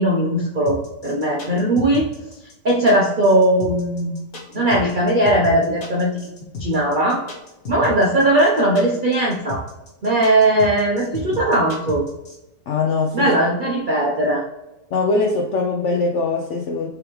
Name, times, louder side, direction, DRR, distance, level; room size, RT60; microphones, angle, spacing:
voice 1, 0.0-2.1 2.6-4.1 4.5-6.2 6.6-7.2 7.7-9.6 10.0-12.0 13.1-14.4, right 1 dB, 70° right, -2 dB, 0.4 m, -18 dB
sound 1, 0.7-12.4, left 3 dB, 55° left, 1.5 m, -33 dB
voice 2, 12.7-13.3 14.9-16.9, left 3 dB, 75° left, 1 dB, 0.6 m, -21 dB
4.7 x 3.4 x 3.0 m, 0.96 s
omnidirectional pair, 1.8 m